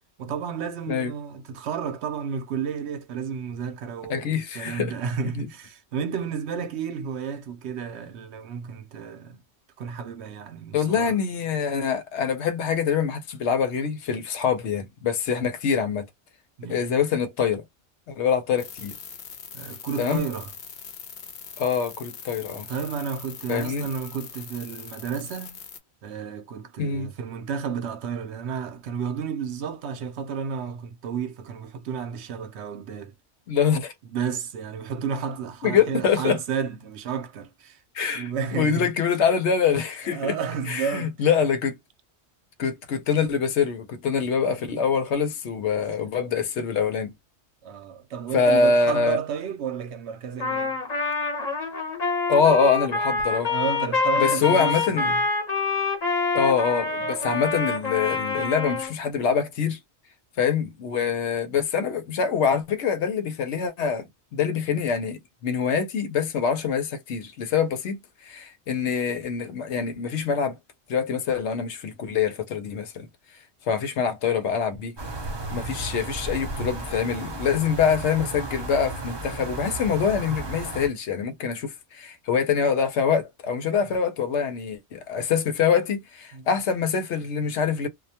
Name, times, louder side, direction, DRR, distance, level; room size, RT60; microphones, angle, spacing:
voice 1, 0.2-9.4 9.8-11.2 16.6-16.9 19.5-20.5 22.7-25.6 26.0-33.1 34.0-37.8 38.1-38.9 40.0-41.3 45.7-46.1 47.6-50.8 53.5-55.2 57.0-57.4 86.3-86.5, right 7 dB, 80° right, 0.9 m, -32 dB
voice 2, 4.1-4.9 5.4-5.5 10.7-16.1 16.7-17.6 18.1-18.9 20.0-20.3 21.6-22.7 23.5-23.9 26.8-27.1 33.5-33.9 35.6-36.4 37.9-40.4 40.7-41.8 42.6-47.1 48.3-49.2 52.3-53.5 54.2-55.1 56.3-59.8 60.4-64.0 64.3-68.0 68.2-70.6 70.9-73.1 73.7-75.0 75.5-87.9, left 6 dB, 85° left, 1.0 m, -24 dB
sound 1, 18.6-25.8, left 7 dB, 70° left, 0.8 m, -42 dB
Trumpet, 50.4-58.9, left 4 dB, 40° left, 0.9 m, -26 dB
sound 2, 75.0-80.9, right 2 dB, 30° right, 0.6 m, -34 dB
2.4 x 2.2 x 2.7 m
omnidirectional pair, 1.1 m